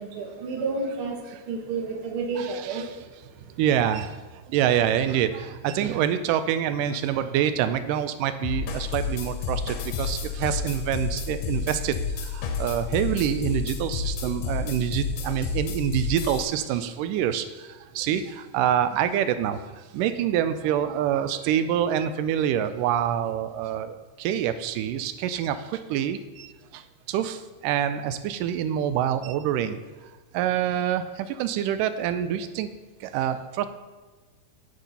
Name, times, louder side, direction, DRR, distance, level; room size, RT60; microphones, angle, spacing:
voice 1, 0.0-2.8, right 4 dB, 50° right, 1 dB, 2.0 m, -30 dB
voice 2, 2.4-2.8 3.6-29.8 30.3-32.7 33.0-33.7, right 10 dB, 90° right, 11 dB, 2.2 m, -26 dB
sound 1, 8.4-16.4, left 5 dB, 75° left, 2.4 m, -30 dB
9.2 x 6.8 x 5.6 m, 1.3 s
omnidirectional pair, 3.7 m